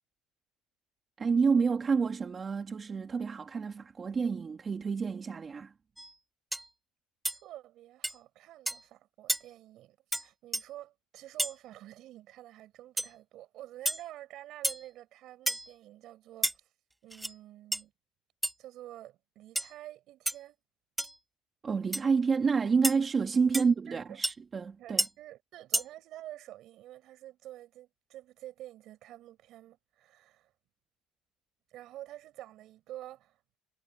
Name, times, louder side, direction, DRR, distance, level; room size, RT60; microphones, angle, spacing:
voice 1, 1.2-5.7 21.6-25.1, right 5 dB, 25° right, 1.9 m, -29 dB
sound 1, 6.0-6.1 6.5-6.7 7.3-7.4 8.0-8.2 8.7-8.8 9.3-9.4 10.1-10.2 10.5-10.6 11.4-11.5 13.0-13.1 13.9-14.0 14.6-14.9 15.5-15.7 16.4-16.5 17.1-17.3 17.7-17.8 18.4-18.5 19.6-19.7 20.3-20.4 21.0-21.2 21.9-22.0 22.8-23.0 23.5-23.7 24.2-24.3 25.0-25.1 25.7-25.9, right 1 dB, 5° right, 0.8 m, -31 dB
voice 2, 7.4-16.6 17.0-17.9 18.6-20.6 23.5-23.7 23.9-24.2 24.8-30.5 31.7-33.6, right 14 dB, 55° right, 5.6 m, -48 dB
cardioid pair, 140°, 0 cm